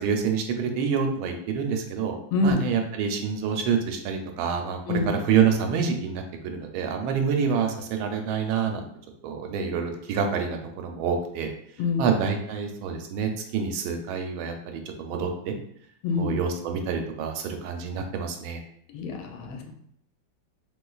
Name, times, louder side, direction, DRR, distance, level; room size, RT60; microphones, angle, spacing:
voice 1, 0.0-2.1 2.4-8.8 9.2-11.5 12.0-15.5 16.2-18.6, right 6 dB, 85° right, 4 dB, 1.4 m, -27 dB
voice 2, 18.9-19.7, left 3 dB, 90° left, 3 dB, 1.4 m, -26 dB
3.3 x 3.1 x 2.3 m, 0.68 s
omnidirectional pair, 2.2 m